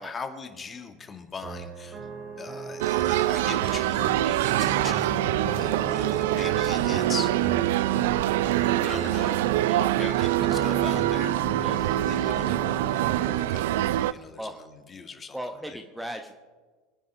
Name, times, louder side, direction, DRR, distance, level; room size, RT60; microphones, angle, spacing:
voice 1, 0.0-2.1 2.4-5.1 5.5-7.3 8.5-9.5 10.0-11.4 12.0-15.4 15.7-15.8, left 5 dB, 25° left, 6 dB, 2.0 m, -40 dB
sound 1, 1.4-13.4, right 4 dB, 35° right, 2.4 m, -36 dB
sound 2, 2.8-14.1, right 15 dB, 65° right, 0.4 m, -25 dB
voice 2, 4.7-5.2 9.7-9.9 11.6-12.0 14.4-14.6 15.3-16.3, equal, 5° right, 5 dB, 1.2 m, -38 dB
26.0 x 9.9 x 3.5 m, 1.4 s
hypercardioid pair, 80°, 0 cm